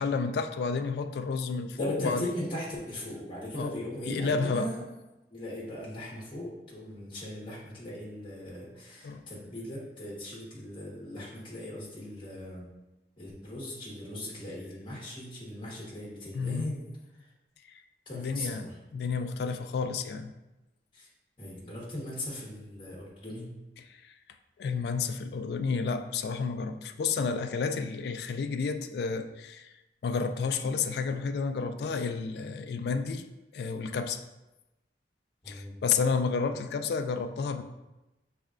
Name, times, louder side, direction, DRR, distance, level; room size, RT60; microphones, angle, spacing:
voice 1, 0.0-2.3 3.6-3.7 4.1-4.7 9.0-9.2 16.3-16.7 17.7-17.8 18.1-20.3 23.9-24.1 24.6-29.7 30.0-34.2 35.5-37.6, left 5 dB, 65° left, 7 dB, 0.3 m, -31 dB
voice 2, 1.6-4.8 5.3-12.7 13.2-17.3 18.1-18.8 20.9-21.1 21.4-23.5 35.4-35.7, left 1 dB, 30° left, -6 dB, 1.1 m, -39 dB
6.2 x 3.3 x 2.4 m, 1.0 s
head